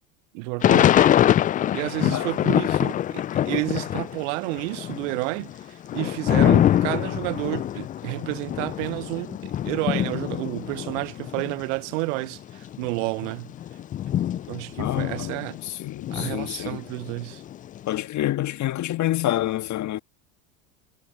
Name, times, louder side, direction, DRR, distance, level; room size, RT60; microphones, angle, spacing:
voice 1, 0.3-1.1 1.7-13.5 14.5-15.6 16.1-17.4, right 27 dB, 65° right, 0.7 m, -30 dB
Thunder / Rain, 0.6-4.2 4.5-11.6 12.2-12.3 12.5-15.7 16.0-17.8, left 11 dB, 20° left, 0.3 m, -24 dB
voice 2, 14.8-16.8 17.9-20.0, left 14 dB, 45° left, 1.8 m, -27 dB
hypercardioid pair, 80°, 40 cm